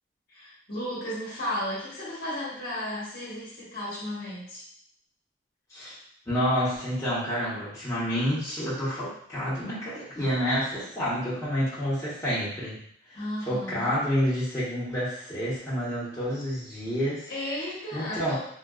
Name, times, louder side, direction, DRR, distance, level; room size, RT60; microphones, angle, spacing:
voice 1, 0.3-4.6 13.1-13.9 17.3-18.4, left 1 dB, 50° left, -8 dB, 1.2 m, -34 dB
voice 2, 6.3-12.8 13.1-13.2 13.5-17.3 17.9-18.4, equal, 15° left, -11 dB, 1.0 m, -29 dB
3.6 x 2.5 x 2.3 m, 0.65 s
head